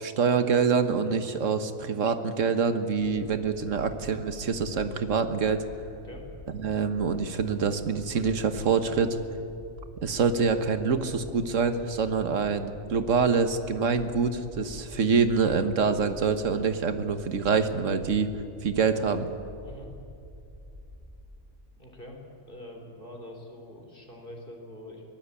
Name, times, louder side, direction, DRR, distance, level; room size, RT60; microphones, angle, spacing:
voice 1, 0.0-5.6 6.6-9.2 10.0-18.3 18.6-19.3, right 5 dB, 85° right, 10 dB, 1.6 m, -25 dB
sound 1, 5.3-21.2, left 1 dB, 35° right, 5.3 m, -47 dB
voice 2, 5.9-6.3 19.6-19.9 21.8-22.2 22.5-25.0, left 1 dB, 45° left, 1 dB, 3.8 m, -44 dB
23.5 x 18.0 x 8.5 m, 2.6 s
omnidirectional pair, 1.3 m